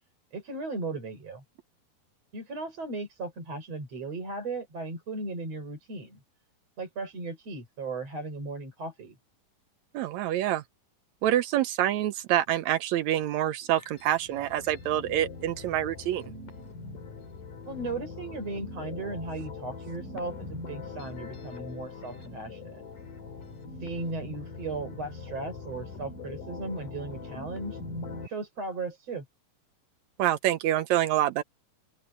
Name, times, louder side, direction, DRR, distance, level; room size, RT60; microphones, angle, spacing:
voice 1, 0.3-1.4 2.3-6.2 6.8-9.2 17.7-22.8 23.8-27.8 28.2-29.3, right 3 dB, 45° right, 6.8 m, -36 dB
voice 2, 9.9-10.6 11.2-16.3 30.2-31.4, right 12 dB, 80° right, 1.7 m, -26 dB
sound 1, 13.6-28.3, left 3 dB, 65° left, 5.0 m, -42 dB
open air
omnidirectional pair, 4.1 m